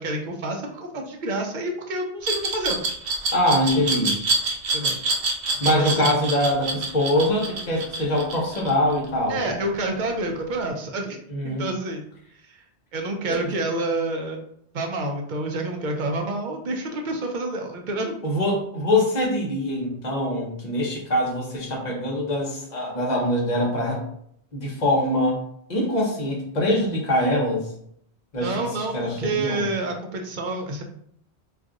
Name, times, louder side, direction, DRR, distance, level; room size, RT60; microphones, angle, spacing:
voice 1, 0.0-2.8 4.7-5.0 5.7-6.1 9.3-11.2 11.4-12.0 12.5-12.6 12.9-14.4 14.7-18.2 28.4-30.9, right 2 dB, 55° right, 2 dB, 0.6 m, -28 dB
Glass, 2.2-9.1, right 3 dB, 75° right, 0.9 m, -26 dB
voice 2, 3.3-4.2 5.6-9.6 11.3-11.7 13.3-13.5 18.2-24.0 24.5-25.4 25.7-27.7 28.3-29.7, left 1 dB, 45° left, -2 dB, 0.9 m, -23 dB
2.5 x 2.3 x 3.7 m, 0.69 s
omnidirectional pair, 1.1 m